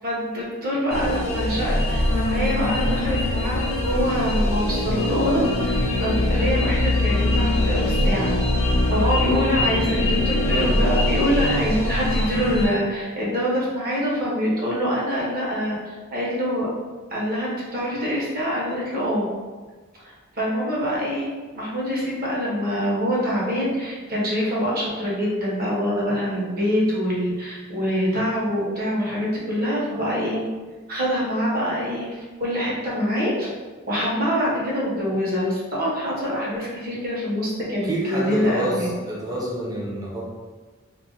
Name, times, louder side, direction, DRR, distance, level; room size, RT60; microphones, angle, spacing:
voice 1, 0.0-16.7 17.1-19.3 20.0-30.4 30.9-33.5 33.9-38.9, equal, 45° right, -5 dB, 0.9 m, -25 dB
sound 1, 0.9-12.7, left 1 dB, 30° left, 0.5 m, -22 dB
voice 2, 37.8-40.2, right 1 dB, 20° right, -4 dB, 0.6 m, -28 dB
2.4 x 2.1 x 3.8 m, 1.4 s
head